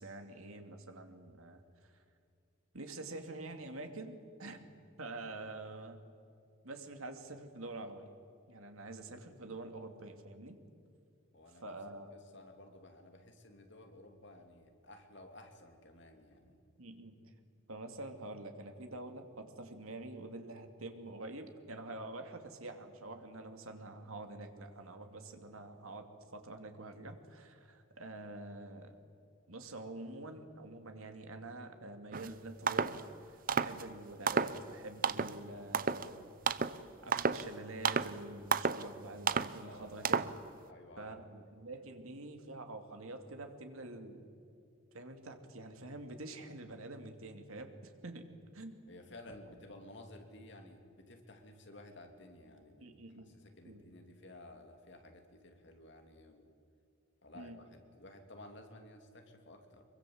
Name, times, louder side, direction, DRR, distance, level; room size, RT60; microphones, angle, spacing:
voice 1, 0.0-1.9 2.7-4.7 5.0-6.0 6.6-8.1 8.5-10.6 11.6-12.1 16.8-17.1 17.7-28.9 29.5-33.0 33.3-36.3 36.8-40.3 41.0-44.3 44.9-48.3 48.5-48.8 52.8-53.3 53.6-53.8 57.3-57.6, right 2 dB, 85° right, 6 dB, 2.6 m, -47 dB
voice 2, 11.3-11.7 12.1-16.6 39.6-40.3 40.7-41.2 48.9-52.9 53.3-56.5 57.2-59.9, left 1 dB, 55° left, 5 dB, 2.9 m, -54 dB
sound 1, 32.1-32.3 32.7-33.0 33.5-33.8 34.3-34.6 35.0-35.4 35.7-36.1 36.5-36.8 37.1-37.5 37.8-38.1 38.5-38.9 39.3-39.5 40.0-40.4, right 5 dB, 40° right, 0.7 m, -31 dB
25.0 x 23.0 x 7.9 m, 2.4 s
head